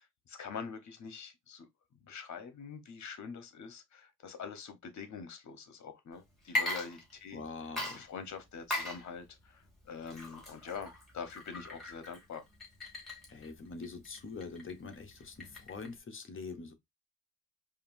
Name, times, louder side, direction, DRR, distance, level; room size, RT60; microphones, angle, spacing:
voice 1, 0.0-1.7 2.0-7.4 7.9-12.5, left 6 dB, 60° left, 1.1 m, -45 dB
Water / Liquid, 6.4-7.4 7.8-16.0, left 1 dB, ahead, 2.3 m, -40 dB
voice 2, 7.3-8.1 13.3-16.7, left 4 dB, 40° left, 0.9 m, -44 dB
5.1 x 2.6 x 2.6 m
cardioid pair, 110°, 32 cm